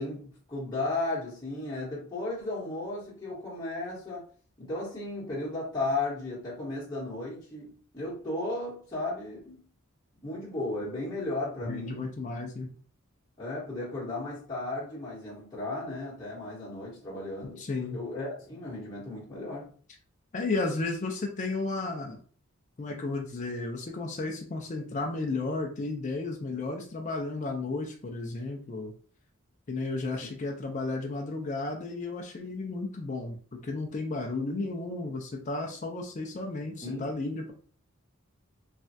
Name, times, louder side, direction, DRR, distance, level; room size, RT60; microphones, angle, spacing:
voice 1, 0.0-4.2 4.6-9.6 10.2-12.1 13.4-17.6 17.9-19.7 36.8-37.1, left 2 dB, 20° left, 1.1 m, -35 dB
voice 2, 11.6-12.7 17.6-18.0 20.3-22.2 22.8-28.9 29.7-37.5, left 3 dB, 35° left, 0.4 m, -33 dB
3.2 x 2.3 x 2.6 m
head